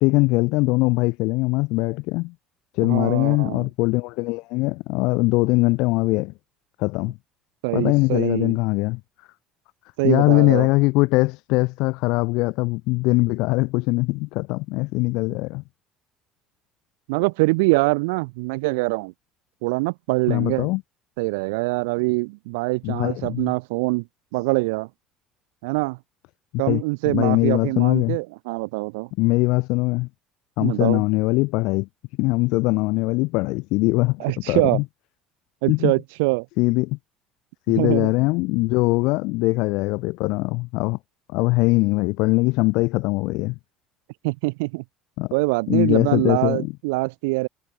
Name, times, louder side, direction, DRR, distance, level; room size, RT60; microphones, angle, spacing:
voice 1, 0.0-2.3 2.7-6.3 6.8-7.2 7.7-9.0 10.0-15.6 20.3-20.8 22.8-23.5 26.5-28.2 29.2-30.1 30.6-31.9 32.2-34.8 35.7-35.9 36.6-37.0 37.7-41.0 41.3-43.5 45.2-45.3 45.7-46.7, left 24 dB, 75° left, 0.7 m, -21 dB
voice 2, 2.8-3.7 7.6-8.6 10.0-10.7 17.1-19.1 19.6-20.7 21.2-24.0 24.3-24.9 25.6-26.0 26.6-29.1 30.6-31.0 34.2-34.8 35.6-36.5 37.7-38.1 44.2-44.8 45.3-47.5, right 27 dB, 90° right, 1.2 m, -24 dB
supercardioid pair, 90°, 0 cm